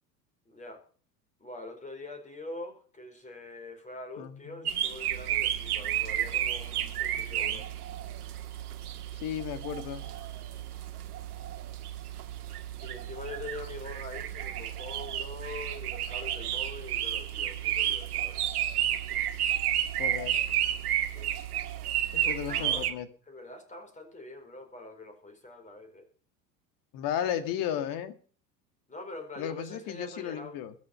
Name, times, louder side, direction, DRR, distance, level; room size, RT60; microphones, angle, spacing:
voice 1, 0.5-0.8 1.4-7.7 12.8-18.4 21.1-21.3 22.1-22.9 23.3-26.1 28.9-30.6, left 2 dB, 15° left, 7 dB, 4.6 m, -44 dB
voice 2, 4.2-4.8 7.2-7.6 9.1-10.1 20.0-20.4 22.1-23.1 26.9-28.1 29.4-30.7, left 10 dB, 40° left, 11 dB, 2.0 m, -35 dB
sound 1, 4.6-22.9, right 11 dB, 65° right, 1.9 m, -32 dB
21.5 x 7.3 x 5.4 m, 0.42 s
figure-of-eight pair, 80°, 49 cm